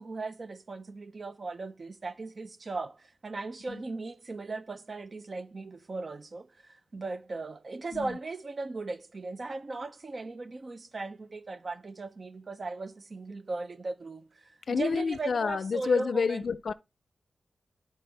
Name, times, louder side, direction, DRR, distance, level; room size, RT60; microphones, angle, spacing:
voice 1, 0.0-16.5, right 3 dB, 40° right, 0.5 m, -38 dB
voice 2, 14.7-16.7, left 5 dB, 60° left, 0.4 m, -28 dB
11.0 x 4.3 x 3.3 m
wide cardioid pair, 130°, 0 cm